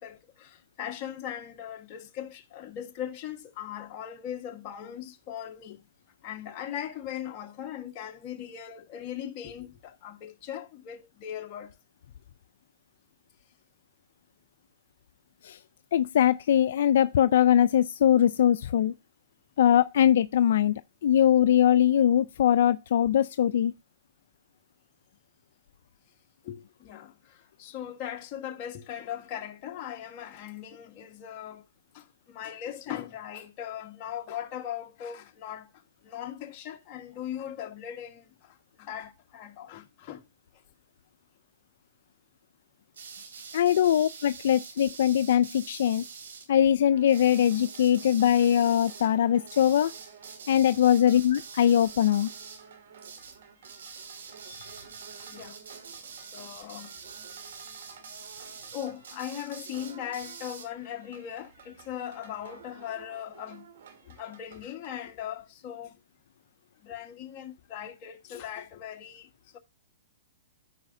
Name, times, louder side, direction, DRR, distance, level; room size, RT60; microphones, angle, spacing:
voice 1, 0.0-5.8 6.2-11.8 26.4-31.6 31.9-40.2 55.2-55.6 56.1-56.9 58.7-63.7 64.0-66.0 66.8-69.6, left 10 dB, 35° left, 1.3 m, -39 dB
voice 2, 15.9-18.9 19.6-23.7 43.5-46.0 46.5-49.9 50.5-52.3 54.5-54.6, left 10 dB, 65° left, 0.3 m, -22 dB
sound 1, 42.9-46.5 47.1-49.1 49.5-52.7 53.0-53.4 53.6-60.7, right 5 dB, 85° right, 2.8 m, -45 dB
sound 2, 46.9-65.0, right 7 dB, 70° right, 2.0 m, -53 dB
14.0 x 4.8 x 2.6 m
hypercardioid pair, 155°, 0 cm